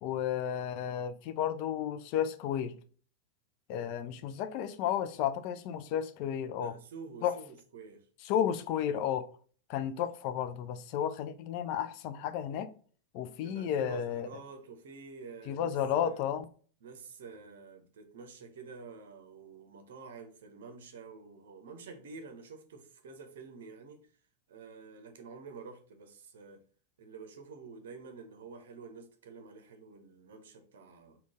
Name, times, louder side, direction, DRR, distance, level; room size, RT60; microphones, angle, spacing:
voice 1, 0.0-2.7 3.7-6.7 7.2-7.4 8.2-9.3 9.7-12.7 13.1-14.3 15.5-16.5, left 9 dB, 45° left, 0.4 m, -32 dB
voice 2, 6.5-8.1 13.4-15.7 16.0-16.3 16.8-24.1 24.5-26.6 27.0-31.2, right 4 dB, 60° right, 0.7 m, -49 dB
3.7 x 2.3 x 3.6 m
figure-of-eight pair, 90°, 0 cm